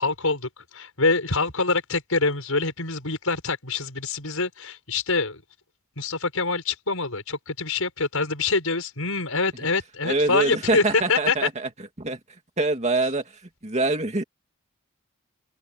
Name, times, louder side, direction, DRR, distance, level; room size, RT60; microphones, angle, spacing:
voice 1, 0.0-5.4 6.0-11.5, left 3 dB, 70° left, 6.3 m, -25 dB
voice 2, 10.1-11.5 12.0-12.2 12.6-13.2 13.6-14.2, right 2 dB, 30° right, 2.3 m, -24 dB
open air
head